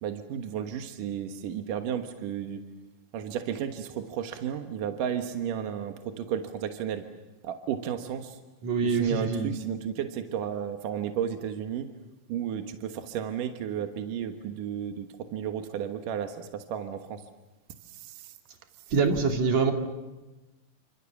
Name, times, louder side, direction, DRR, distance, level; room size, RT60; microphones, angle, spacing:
voice 1, 0.0-2.6 3.1-7.0 7.4-8.4 8.8-11.9 12.3-15.1 15.3-17.2 17.9-18.3, right 9 dB, 75° right, 6 dB, 2.9 m, -33 dB
voice 2, 8.6-9.5 18.9-19.7, right 4 dB, 55° right, 4 dB, 3.5 m, -25 dB
29.5 x 25.5 x 7.2 m, 1.1 s
omnidirectional pair, 3.9 m